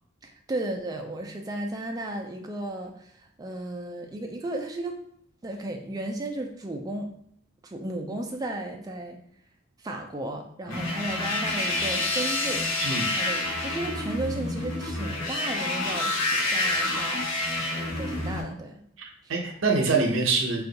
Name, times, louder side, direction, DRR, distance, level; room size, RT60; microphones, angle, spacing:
voice 1, 0.2-5.0 5.4-7.1 7.6-9.2 9.8-12.7 13.1-17.2 17.7-18.8 19.2-19.3, right 1 dB, 20° right, 3 dB, 0.3 m, -34 dB
sound 1, 10.7-18.4, left 2 dB, 60° left, 0.8 m, -28 dB
voice 2, 19.0-20.7, right 3 dB, 65° right, 1 dB, 0.6 m, -25 dB
2.6 x 2.3 x 3.9 m, 0.70 s
head